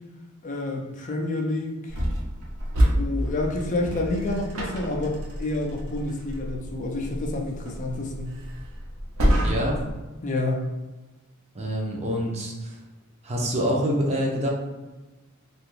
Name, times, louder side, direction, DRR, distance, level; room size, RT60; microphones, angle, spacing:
voice 1, 0.4-2.0 3.0-8.4 10.2-10.6, left 2 dB, 35° left, 1 dB, 0.4 m, -29 dB
sound 1, 1.9-9.9, equal, 75° right, 0.8 m, -28 dB
voice 2, 9.4-9.8 11.5-12.8 13.2-14.5, equal, 30° right, -1 dB, 0.5 m, -26 dB
2.8 x 2.4 x 3.1 m, 1.1 s
head